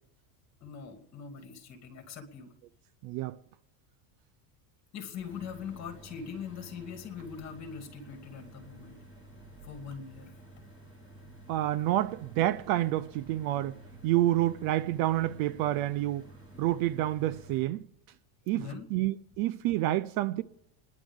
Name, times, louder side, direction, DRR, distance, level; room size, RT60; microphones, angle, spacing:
voice 1, 0.6-2.5 4.9-9.0 9.6-10.3 18.4-18.9, left 6 dB, 35° left, 2.6 m, -42 dB
voice 2, 3.0-3.4 11.5-13.8 14.0-16.2 16.6-17.9 18.5-20.4, right 14 dB, 50° right, 0.5 m, -28 dB
sound 1, 5.1-17.6, right 1 dB, 10° right, 7.3 m, -52 dB
29.5 x 11.0 x 3.6 m
cardioid pair, 160°, 47 cm